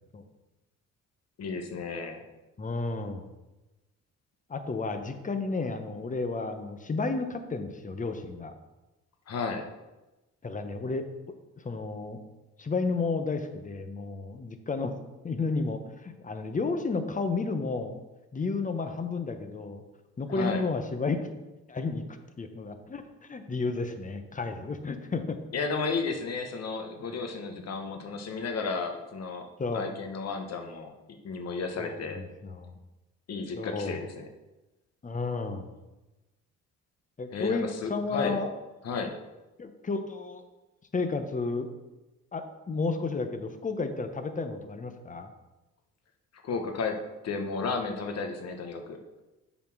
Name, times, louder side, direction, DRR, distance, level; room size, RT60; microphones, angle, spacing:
voice 1, 1.4-2.2 9.3-9.7 20.3-20.6 25.5-29.5 29.7-30.9 31.2-32.2 33.3-34.2 37.3-38.4 38.8-39.1 46.4-49.0, left 4 dB, 55° left, 5 dB, 1.2 m, -33 dB
voice 2, 2.6-3.2 4.5-8.5 10.4-11.1 11.6-12.2 12.6-14.9 15.2-18.0 18.3-19.8 20.2-21.3 21.7-22.0 22.4-25.4 29.6-29.9 31.8-32.7 33.6-34.1 35.0-35.7 37.2-38.5 39.6-40.4 40.9-41.7 42.3-45.3, left 3 dB, 25° left, 8 dB, 0.9 m, -32 dB
7.3 x 4.3 x 5.9 m, 1.1 s
cardioid pair, 90°, 30 cm